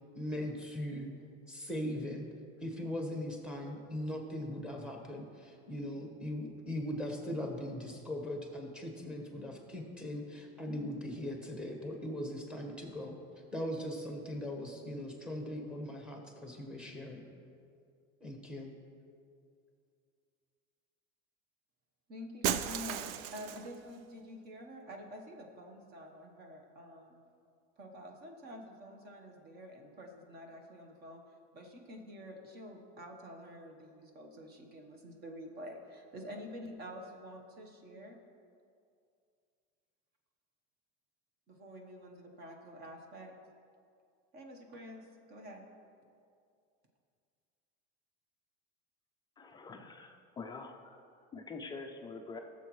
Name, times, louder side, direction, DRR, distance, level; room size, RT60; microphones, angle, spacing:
voice 1, 0.1-1.1 1.5-2.3 2.6-13.1 13.5-17.2 18.2-18.7, left 1 dB, 5° right, 1 dB, 1.2 m, -39 dB
voice 2, 22.1-27.2 27.8-31.2 31.5-38.2 41.5-43.3 44.3-45.6, equal, 35° right, 3 dB, 1.1 m, -48 dB
Shatter, 22.4-23.8, right 9 dB, 90° right, 0.6 m, -35 dB
voice 3, 49.4-52.4, left 4 dB, 15° left, 3 dB, 0.4 m, -46 dB
17.0 x 7.3 x 3.1 m, 2.4 s
cardioid pair, 165°, 29 cm